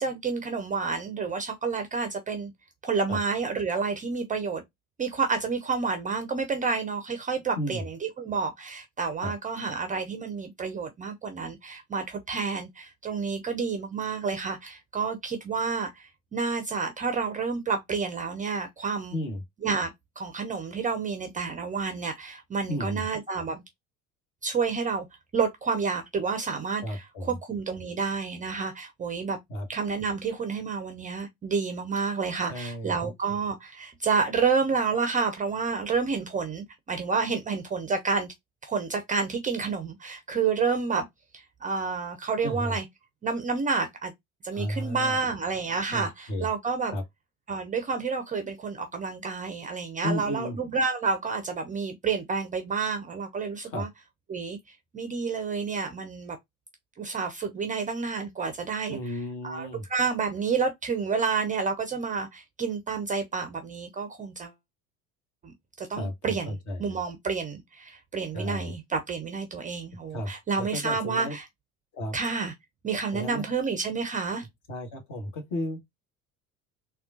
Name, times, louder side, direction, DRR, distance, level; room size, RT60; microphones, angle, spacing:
voice 1, 0.0-2.5 2.8-4.6 5.0-19.2 19.6-23.6 24.4-25.0 25.3-29.4 29.7-38.3 38.6-41.1 41.3-42.8 43.2-44.1 44.4-46.9 47.5-53.9 54.3-56.4 57.0-59.0 59.4-64.5 65.4-71.5 72.1-72.5 72.8-74.5, right 5 dB, 20° right, 0.5 m, -29 dB
voice 2, 7.6-7.9 9.2-9.3 19.1-19.4 22.7-23.1 26.8-27.4 29.5-29.7 32.5-33.1 42.4-42.8 44.5-45.2 45.9-46.5 46.9-47.0 50.0-50.6 53.6-53.8 58.9-59.8 66.0-67.0 68.3-68.7 70.1-71.4 71.9-72.2 73.1-73.4 74.7-75.8, left 1 dB, 45° left, 1.3 m, -33 dB
3.5 x 2.3 x 2.4 m
figure-of-eight pair, 65°, 43 cm